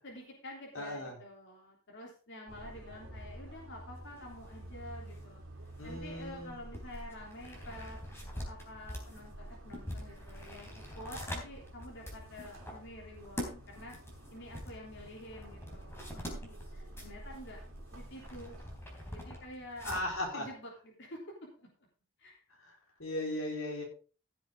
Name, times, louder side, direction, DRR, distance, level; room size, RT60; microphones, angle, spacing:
voice 1, 0.0-5.4 5.8-8.0 8.4-13.9 14.3-17.6 17.9-18.6 18.9-19.9 20.3-21.2 21.6-21.7 22.2-22.4, left 1 dB, 60° left, -2 dB, 3.5 m, -49 dB
voice 2, 0.7-1.1 5.8-6.5 19.8-20.5 22.6-22.7 23.0-23.8, left 1 dB, 80° left, 0 dB, 4.0 m, -37 dB
sound 1, 2.5-18.8, right 1 dB, 65° right, 3.1 m, -50 dB
sound 2, 3.9-20.3, left 1 dB, 10° left, 3.7 m, -46 dB
15.5 x 7.4 x 3.8 m, 0.37 s
head